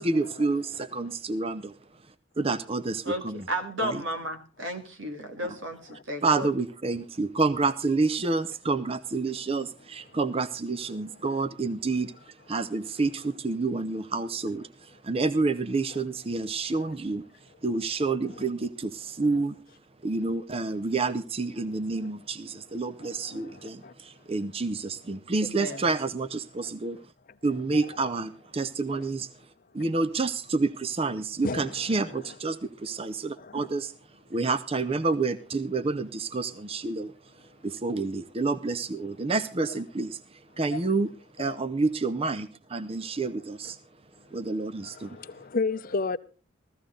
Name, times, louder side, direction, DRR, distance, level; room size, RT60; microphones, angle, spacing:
voice 1, 0.0-1.8 2.4-3.5 3.8-4.0 6.2-17.2 17.6-19.6 20.0-27.0 27.4-29.3 29.7-33.9 34.3-41.1 41.4-43.8 44.3-45.2, right 3 dB, 30° right, 0.6 m, -29 dB
voice 2, 3.5-6.5 25.4-25.8, equal, 85° right, 2.1 m, -33 dB
voice 3, 23.0-23.9 25.7-25.8 27.7-27.8 29.0-29.1 31.4-32.1 33.4-33.7 40.7-40.9 44.8-46.2, left 4 dB, 45° left, 0.7 m, -34 dB
15.5 x 14.0 x 3.8 m
head